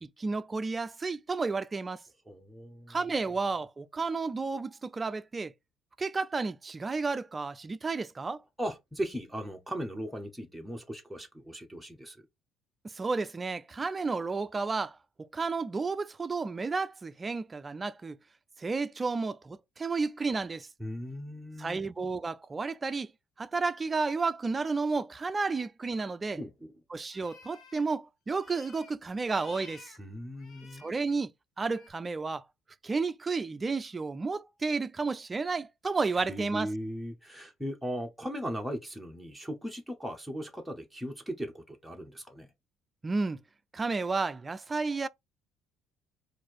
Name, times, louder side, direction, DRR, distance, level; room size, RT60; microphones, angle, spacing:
voice 1, 0.0-2.0 2.9-5.5 6.0-8.4 12.9-15.0 15.3-18.2 18.6-20.7 21.6-23.1 23.4-26.4 26.9-29.9 30.8-31.3 31.6-32.4 32.8-36.7 43.0-43.4 43.7-45.1, right 4 dB, 20° right, 0.3 m, -32 dB
voice 2, 2.3-3.0 8.6-12.2 20.8-21.8 26.4-26.7 30.0-30.9 36.1-42.5, equal, ahead, 0.8 m, -38 dB
sound 1, 25.9-26.2 27.1-27.8 28.3-28.9 29.3-30.0 30.3-30.9 31.7-31.9, left 5 dB, 55° left, 0.9 m, -54 dB
4.2 x 2.5 x 4.5 m
cardioid pair, 110°, 0 cm